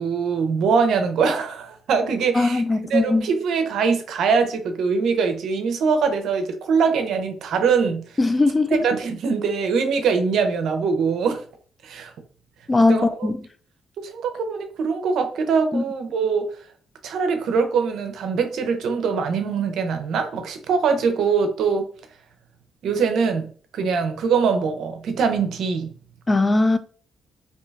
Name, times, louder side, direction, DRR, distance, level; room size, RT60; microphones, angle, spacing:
voice 1, 0.0-2.6 2.9-8.2 8.8-11.4 11.8-12.1 12.9-13.3 14.0-16.6 17.0-21.9 22.8-25.9, right 5 dB, 75° right, 0.6 m, -23 dB
voice 2, 2.3-3.3 8.2-8.8 12.7-13.4 15.7-15.8 26.3-26.8, left 2 dB, 20° left, 0.3 m, -19 dB
2.8 x 2.2 x 3.3 m
cardioid pair, 90°, 0 cm